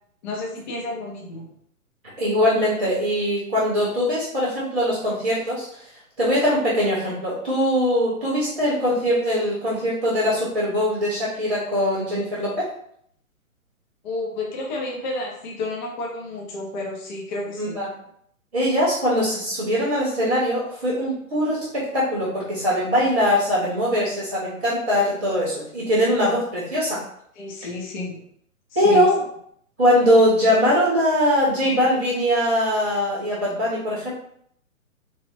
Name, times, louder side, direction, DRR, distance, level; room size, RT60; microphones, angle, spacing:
voice 1, 0.2-1.5 14.0-17.8 27.4-28.3 28.7-29.1, left 2 dB, 30° left, -2 dB, 0.7 m, -31 dB
voice 2, 2.2-5.8 6.2-12.6 17.6-17.9 18.5-27.0 28.8-29.1 29.8-34.1, equal, 10° right, -18 dB, 0.4 m, -21 dB
3.3 x 2.4 x 2.6 m, 0.68 s
figure-of-eight pair, 125°, 43 cm